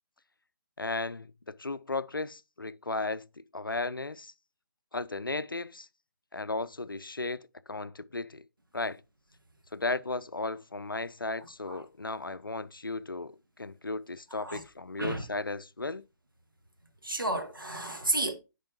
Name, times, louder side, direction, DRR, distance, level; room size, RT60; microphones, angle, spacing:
voice 1, 0.8-3.3 3.5-4.3 4.9-5.9 6.3-8.4 8.7-9.0 9.7-16.0, left 3 dB, 90° left, 0.4 m, -35 dB
voice 2, 17.0-18.3, right 1 dB, 90° right, 1.3 m, -31 dB
10.0 x 4.5 x 3.0 m
figure-of-eight pair, 140°, 11 cm